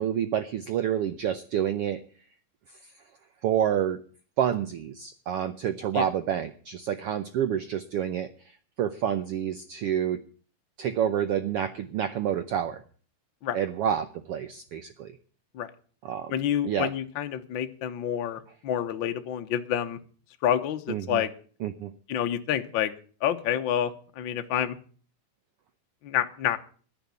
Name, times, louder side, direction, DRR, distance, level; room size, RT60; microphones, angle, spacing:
voice 1, 0.0-2.0 3.4-4.0 4.4-8.3 8.8-10.2 10.8-12.8 13.5-15.2 16.0-16.3 16.6-16.9 20.9-21.2 21.6-21.9, right 9 dB, 85° right, 10 dB, 1.3 m, -28 dB
voice 2, 16.3-20.0 20.4-21.3 22.1-22.9 23.2-24.8 26.0-26.6, left 10 dB, 70° left, 8 dB, 1.1 m, -28 dB
11.0 x 10.5 x 8.4 m, 0.44 s
omnidirectional pair, 3.6 m